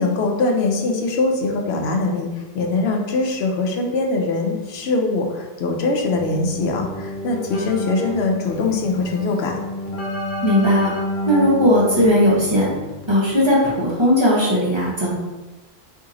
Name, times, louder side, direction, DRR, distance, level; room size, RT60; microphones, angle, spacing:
voice 1, 0.0-2.3 2.5-9.5, left 3 dB, 85° left, 1 dB, 0.9 m, -22 dB
Keyboard (musical), 6.1-13.4, left 1 dB, 60° left, 0.8 m, -30 dB
voice 2, 10.4-10.9 11.3-12.7 13.1-15.1, equal, 30° right, -6 dB, 0.8 m, -17 dB
2.9 x 2.7 x 3.7 m, 1.1 s
omnidirectional pair, 1.0 m